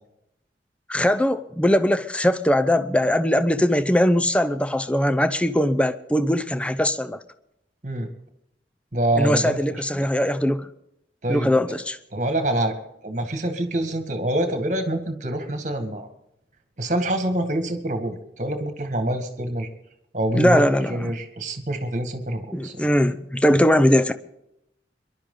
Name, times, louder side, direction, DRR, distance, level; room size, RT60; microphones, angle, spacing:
voice 1, 0.9-7.2 9.2-10.7 11.3-12.0 20.3-21.0 22.5-24.1, equal, 5° left, 0.6 m, -20 dB
voice 2, 8.9-10.1 11.2-11.5 12.1-12.8 13.0-16.1 16.8-19.7 20.1-22.9, right 1 dB, 45° right, 1.9 m, -26 dB
24.0 x 12.0 x 3.9 m
head